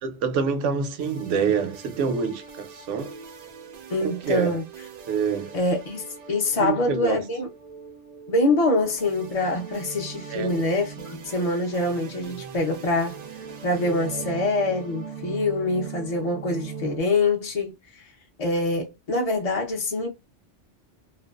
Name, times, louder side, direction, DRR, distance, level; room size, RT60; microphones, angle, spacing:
voice 1, 0.0-3.1 4.0-4.6 5.1-5.6 6.6-7.2 10.3-10.7 13.9-14.2, right 6 dB, 85° right, 0.9 m, -27 dB
sound 1, 1.0-17.0, right 6 dB, 70° right, 0.3 m, -41 dB
voice 2, 3.9-4.6 5.5-7.5 8.3-13.2 13.6-17.7 18.0-18.1 18.4-20.1, left 2 dB, 50° left, 0.4 m, -25 dB
2.4 x 2.1 x 2.3 m
omnidirectional pair, 1.2 m